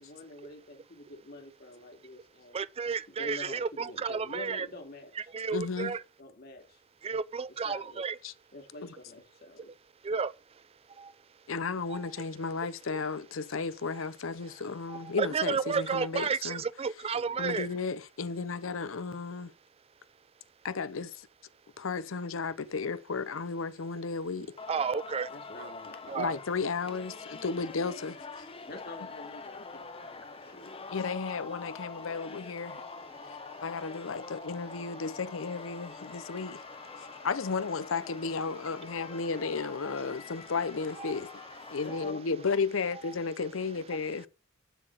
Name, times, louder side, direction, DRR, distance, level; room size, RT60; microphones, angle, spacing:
voice 1, 0.0-2.6 3.1-5.9 6.2-6.8 7.6-8.0 8.5-9.7 17.1-17.6 25.3-26.4 28.7-30.7 41.8-42.2, left 2 dB, 50° left, 2.5 m, -47 dB
voice 2, 2.5-4.7 5.3-6.0 7.0-8.2 10.0-10.3 11.0-11.1 11.9-12.0 14.9-17.7 24.7-25.3 25.6-25.7 26.1-26.4 41.0-41.1, right 5 dB, 30° right, 0.4 m, -32 dB
voice 3, 5.5-6.0 8.2-8.3 11.5-16.6 17.4-19.5 20.6-21.3 21.8-24.5 26.2-28.5 30.9-32.8 33.2-36.6 37.0-41.3 41.7-44.3, left 4 dB, 85° left, 0.7 m, -34 dB
Singing, 24.6-42.1, left 4 dB, 30° left, 0.7 m, -45 dB
12.0 x 4.1 x 7.7 m
head